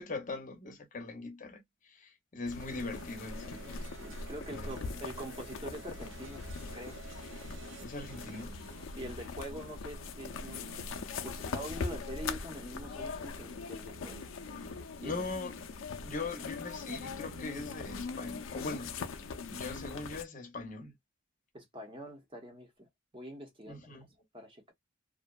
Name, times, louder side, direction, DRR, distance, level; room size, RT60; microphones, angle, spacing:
voice 1, 0.0-3.9 4.5-5.0 7.8-8.7 15.0-15.6 16.0-18.9 19.5-20.9 23.6-24.1, left 3 dB, 40° left, 0.7 m, -41 dB
sound 1, 2.4-20.2, left 4 dB, 80° left, 0.4 m, -41 dB
sound 2, 2.6-19.7, right 6 dB, 65° right, 0.5 m, -54 dB
voice 2, 4.0-6.5 6.7-7.0 9.0-11.0 11.2-14.2 15.0-15.1 21.5-22.9 23.1-24.1 24.3-24.7, equal, 25° right, 0.9 m, -44 dB
2.6 x 2.1 x 2.2 m
head